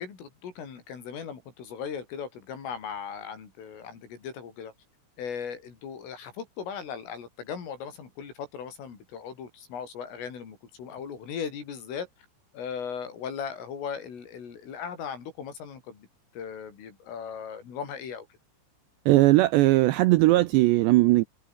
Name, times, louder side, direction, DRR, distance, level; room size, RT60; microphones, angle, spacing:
voice 1, 0.0-4.7 5.2-12.1 12.5-16.1 16.3-18.3, left 7 dB, 80° left, 7.6 m, -38 dB
voice 2, 19.1-21.2, right 19 dB, 85° right, 2.5 m, -19 dB
omnidirectional pair, 5.7 m